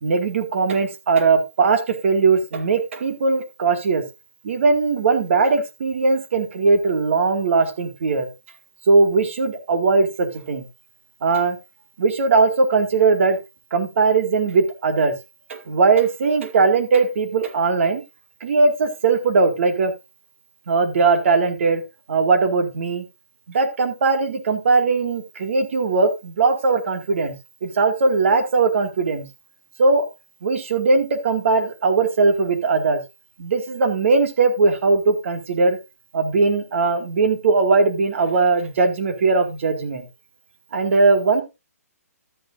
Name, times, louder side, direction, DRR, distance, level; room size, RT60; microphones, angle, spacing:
voice 1, 0.0-4.0 4.4-8.3 8.9-10.7 11.2-11.6 12.0-13.4 13.7-15.1 15.5-18.0 18.4-19.9 20.7-21.8 22.1-23.0 23.5-27.3 27.6-29.3 29.8-30.0 30.4-33.0 33.4-35.8 36.1-40.1 40.7-41.4, right 4 dB, 50° right, 6 dB, 2.3 m, -19 dB
13.0 x 8.9 x 2.7 m, 0.25 s
hypercardioid pair, 165°, 9 cm